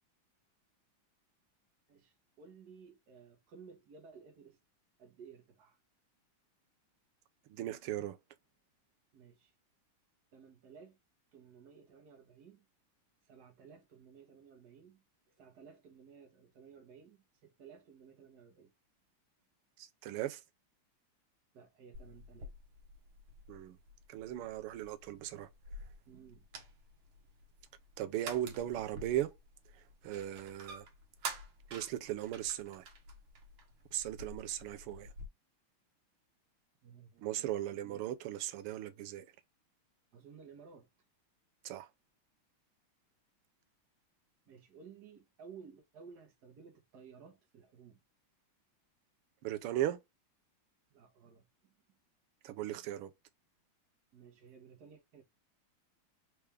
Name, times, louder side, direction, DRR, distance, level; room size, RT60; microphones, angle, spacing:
voice 1, 1.9-4.6 5.0-5.8 9.1-9.5 10.3-11.0 11.3-12.7 13.2-18.7 21.5-22.5 26.1-26.5 36.8-38.0 40.1-40.9 44.5-48.0 50.9-52.0 54.1-55.2, right 6 dB, 50° right, 1.6 m, -56 dB
voice 2, 7.5-8.2 19.8-20.4 23.5-23.8 24.1-25.5 28.0-29.3 29.7-30.9 31.7-32.9 33.9-35.1 37.2-39.3 41.6-41.9 49.4-50.0 52.4-53.1, right 12 dB, 85° right, 1.5 m, -38 dB
sound 1, 21.9-35.3, right 2 dB, 70° right, 2.0 m, -49 dB
4.5 x 3.2 x 3.4 m
omnidirectional pair, 2.4 m